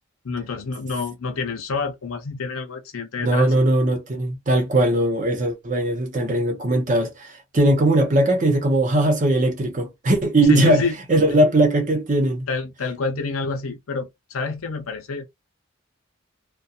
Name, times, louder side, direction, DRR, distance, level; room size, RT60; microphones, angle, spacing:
voice 1, 0.2-3.5 10.5-11.3 12.5-15.3, left 4 dB, 80° left, 0.6 m, -28 dB
voice 2, 3.2-12.5, right 1 dB, 35° right, 0.7 m, -19 dB
2.4 x 2.1 x 2.7 m
head